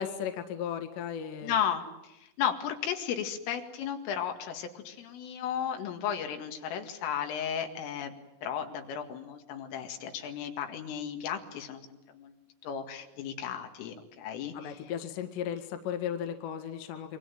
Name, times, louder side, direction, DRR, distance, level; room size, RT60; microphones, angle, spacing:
voice 1, 0.0-1.6 14.5-17.2, left 8 dB, 65° left, 7 dB, 3.7 m, -35 dB
voice 2, 1.4-1.8 2.4-8.1 8.4-11.8 12.1-12.3 12.6-14.8, left 8 dB, 80° left, 5 dB, 4.7 m, -34 dB
27.5 x 23.5 x 9.2 m, 0.92 s
omnidirectional pair, 5.7 m